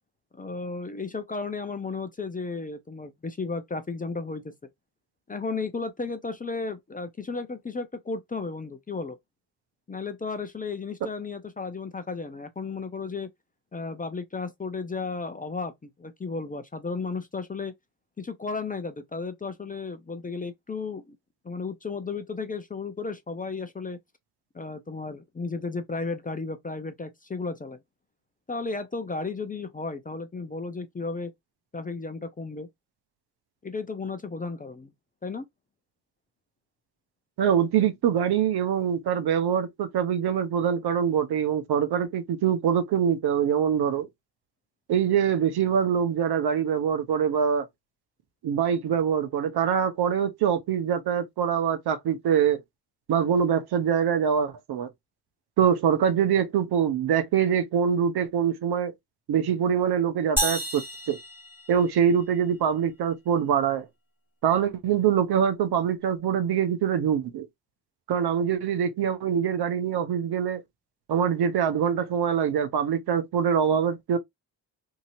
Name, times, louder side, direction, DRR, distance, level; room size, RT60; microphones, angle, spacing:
voice 1, 0.3-4.5 5.3-9.2 9.9-13.3 13.7-15.7 16.0-17.7 18.2-21.2 21.4-24.0 24.5-27.8 28.5-31.3 31.7-32.7 33.6-34.9 35.2-35.4, left 4 dB, 20° left, 0.6 m, -34 dB
voice 2, 37.4-44.1 44.9-47.7 48.4-52.6 53.1-54.9 55.6-58.9 59.3-61.2 61.7-63.8 64.4-67.5 68.1-70.6 71.1-74.2, right 8 dB, 55° right, 0.7 m, -24 dB
sound 1, 60.4-62.3, right 1 dB, 5° right, 1.5 m, -31 dB
2.8 x 2.7 x 2.6 m
hypercardioid pair, 45°, 47 cm